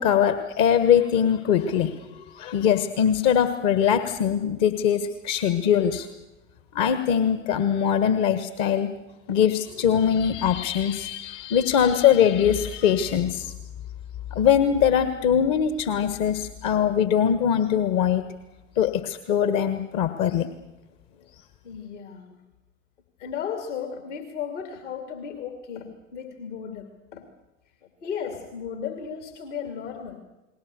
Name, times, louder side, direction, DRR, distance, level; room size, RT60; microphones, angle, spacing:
voice 1, 0.0-6.1 6.7-8.9 9.3-13.5 14.3-18.2 18.8-20.5, left 8 dB, 45° left, 11 dB, 1.4 m, -22 dB
voice 2, 21.6-22.4 23.2-27.2 27.8-30.2, left 7 dB, 65° left, 6 dB, 2.6 m, -35 dB
30.0 x 20.5 x 6.8 m, 1.0 s
figure-of-eight pair, 80°, 38 cm